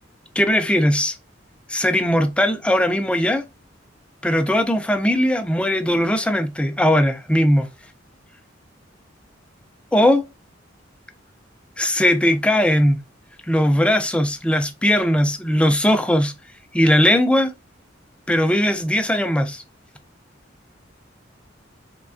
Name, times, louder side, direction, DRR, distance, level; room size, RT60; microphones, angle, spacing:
voice 1, 0.4-1.1 1.7-3.4 4.2-7.7 9.9-10.2 11.8-13.0 13.5-16.3 16.7-17.5 18.3-19.6, equal, 5° left, 0.3 m, -19 dB
3.3 x 2.2 x 2.4 m
head